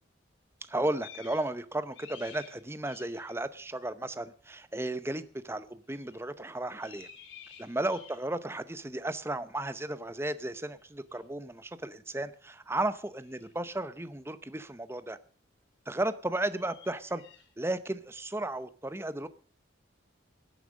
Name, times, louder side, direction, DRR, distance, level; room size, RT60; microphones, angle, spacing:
voice 1, 0.6-7.1 7.6-15.2 15.9-17.2 17.6-19.3, right 1 dB, 15° right, 0.7 m, -34 dB
sound 1, 1.0-1.6 1.8-3.4 5.9-6.3 6.7-8.4 11.1-11.2 13.1-13.5 16.4-17.5, left 7 dB, 75° left, 2.9 m, -52 dB
17.5 x 9.1 x 6.4 m
head